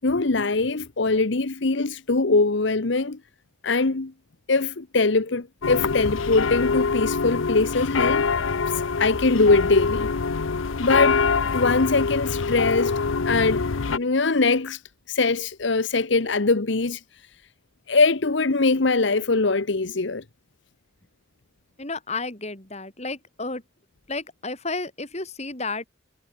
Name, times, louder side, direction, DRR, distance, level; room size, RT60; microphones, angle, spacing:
voice 1, 0.0-3.2 3.6-4.1 4.5-8.3 8.7-10.1 10.8-13.0 13.3-14.8 15.1-17.0 17.9-20.2, left 3 dB, 65° left, 1.0 m, -22 dB
sound 1, 5.6-14.0, left 4 dB, 85° left, 0.8 m, -24 dB
voice 2, 21.8-23.6 24.1-25.9, left 3 dB, 35° left, 3.6 m, -32 dB
head